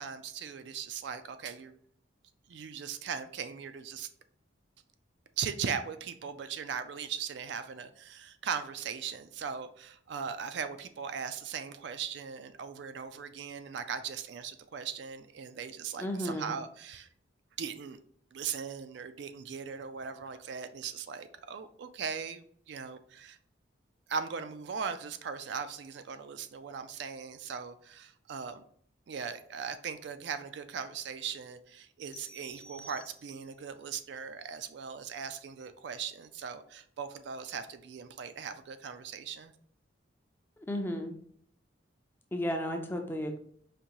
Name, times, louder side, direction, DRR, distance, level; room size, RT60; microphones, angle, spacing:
voice 1, 0.0-1.7 2.5-4.1 5.4-17.1 17.6-18.0 18.3-23.4 24.1-28.6 29.1-39.5, right 6 dB, 60° right, 10 dB, 0.3 m, -39 dB
voice 2, 16.0-16.5 40.7-41.2 42.3-43.4, equal, 10° left, 4 dB, 0.4 m, -33 dB
sound 1, 32.1-33.6, equal, 55° left, 0.8 m, -52 dB
5.0 x 2.6 x 2.9 m, 0.62 s
head